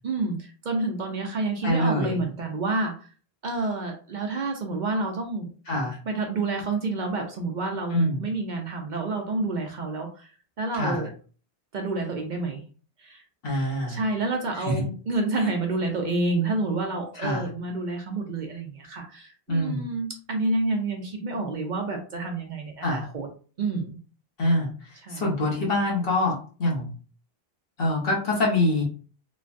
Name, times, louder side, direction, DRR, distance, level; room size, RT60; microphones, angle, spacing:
voice 1, 0.0-3.1 3.4-5.5 6.1-10.3 10.6-11.1 11.7-12.6 13.0-13.2 13.9-23.3 23.6-24.0 25.0-25.2, right 3 dB, 55° right, 2 dB, 0.6 m, -29 dB
voice 2, 1.6-2.2 5.7-6.0 7.9-8.2 10.7-11.0 13.4-14.0 14.6-14.8 17.2-17.5 19.5-19.9 22.8-23.1 24.4-26.9 27.8-28.8, left 1 dB, 65° left, -2 dB, 1.2 m, -25 dB
3.1 x 2.1 x 2.5 m, 0.39 s
omnidirectional pair, 1.1 m